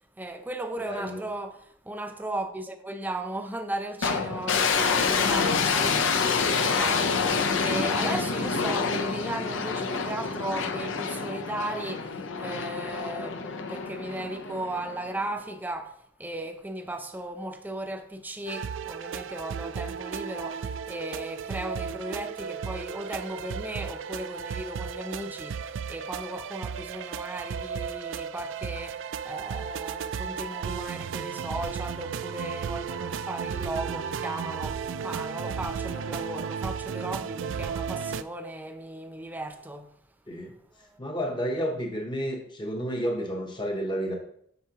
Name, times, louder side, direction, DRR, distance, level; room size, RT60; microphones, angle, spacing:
voice 1, 0.2-39.9, right 1 dB, 10° right, 0.5 m, -36 dB
voice 2, 0.8-1.2 5.8-6.1 40.3-40.5 41.0-44.2, equal, 25° left, 0.9 m, -31 dB
sound 1, 4.0-15.2, left 5 dB, 80° left, 0.7 m, -27 dB
sound 2, 18.5-38.2, right 7 dB, 75° right, 0.3 m, -34 dB
8.0 x 5.8 x 2.9 m
head